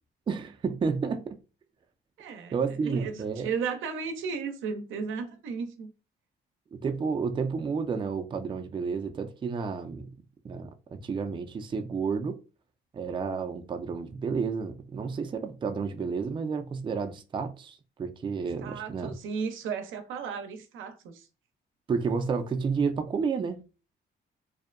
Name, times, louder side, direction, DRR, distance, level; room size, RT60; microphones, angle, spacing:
voice 1, 0.3-1.4 2.5-3.5 6.7-10.1 10.4-12.4 12.9-19.1 21.9-23.6, right 5 dB, 25° right, 0.3 m, -31 dB
voice 2, 2.2-2.5 2.8-5.9 18.6-21.3, right 6 dB, 80° right, 0.5 m, -34 dB
2.6 x 2.1 x 2.4 m
cardioid pair, 90°, 20 cm